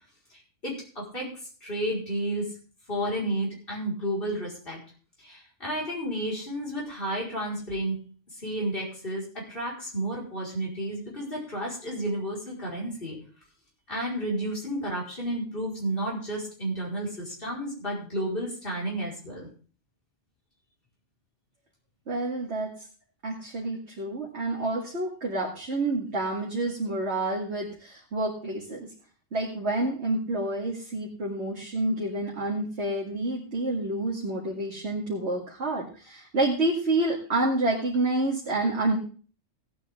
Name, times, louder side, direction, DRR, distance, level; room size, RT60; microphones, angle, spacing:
voice 1, 0.6-1.3 1.6-2.5 2.9-4.8 5.2-8.0 8.3-13.2 13.9-19.5, right 1 dB, 50° left, -4 dB, 5.2 m, -31 dB
voice 2, 22.1-22.7 23.2-28.9 29.3-39.0, right 2 dB, 65° right, -3 dB, 2.4 m, -28 dB
17.0 x 9.1 x 3.7 m, 0.40 s
omnidirectional pair, 1.2 m